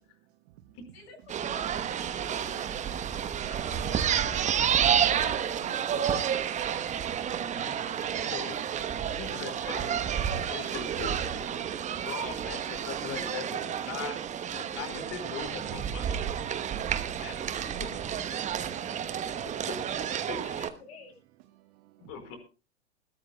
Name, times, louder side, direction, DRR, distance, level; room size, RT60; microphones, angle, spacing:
voice 1, 0.3-0.8 1.6-2.0 11.6-12.1 21.5-22.3, right 14 dB, 45° right, 1.2 m, -59 dB
sound 1, 1.3-20.7, right 9 dB, 20° right, 1.0 m, -30 dB
voice 2, 2.0-3.0 3.5-6.3 8.3-8.4 9.6-10.0 17.6-18.2 20.1-21.2 22.2-22.4, left 4 dB, 65° left, 7.0 m, -51 dB
voice 3, 7.5-7.9 8.3-8.5 9.2-9.8 10.5-11.5 12.1-14.2 14.5-16.4 17.2-17.4 19.7-19.8 22.0-22.4, left 7 dB, 40° left, 4.9 m, -40 dB
20.5 x 16.5 x 2.3 m
figure-of-eight pair, 100°, 35 cm